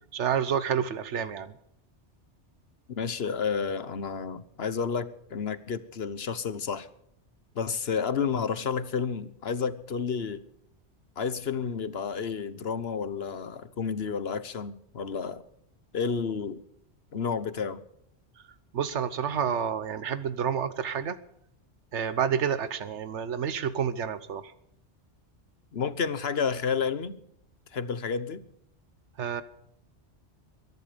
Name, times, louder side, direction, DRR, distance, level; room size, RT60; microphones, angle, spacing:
voice 1, 0.1-1.5 18.7-21.2 21.9-24.5 29.2-29.4, right 8 dB, 90° right, 1.2 m, -29 dB
voice 2, 2.9-6.9 7.5-10.4 11.2-15.4 15.9-16.6 17.1-17.8 25.7-27.2 27.7-28.4, left 6 dB, 65° left, 1.3 m, -31 dB
23.0 x 11.0 x 5.1 m
omnidirectional pair, 1.1 m